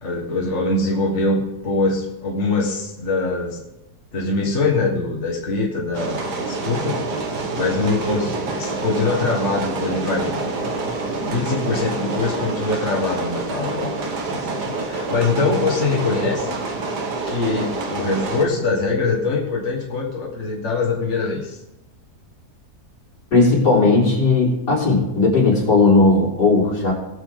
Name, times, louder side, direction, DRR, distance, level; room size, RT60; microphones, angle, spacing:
voice 1, 0.0-3.6 4.1-7.1 7.5-10.4 11.2-13.9 14.3-16.6 17.3-21.6, left 3 dB, 45° left, -2 dB, 2.1 m, -23 dB
Train - Rogers backyard, 5.9-18.5, right 3 dB, 75° right, 2.1 m, -27 dB
voice 2, 23.3-26.9, left 3 dB, 75° left, -5 dB, 4.3 m, -16 dB
20.0 x 7.4 x 3.9 m, 0.93 s
omnidirectional pair, 1.8 m